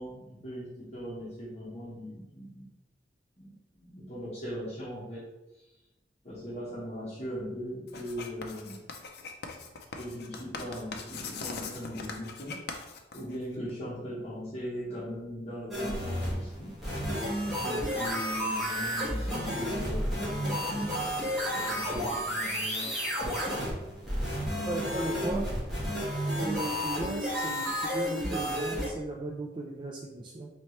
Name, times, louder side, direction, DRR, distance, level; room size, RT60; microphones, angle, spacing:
voice 1, 0.0-2.7 3.4-3.5 3.8-5.2 6.2-8.8 10.0-12.6 13.1-16.7 17.6-21.1 21.4-22.9, equal, 40° left, -9 dB, 1.1 m, -39 dB
Writing, 7.9-13.7, left 4 dB, 60° left, 0.5 m, -41 dB
sound 1, 15.7-28.9, equal, ahead, 1.4 m, -31 dB
voice 2, 24.7-25.5 26.4-30.5, right 2 dB, 25° right, -1 dB, 0.3 m, -36 dB
4.3 x 2.9 x 3.1 m, 0.97 s
head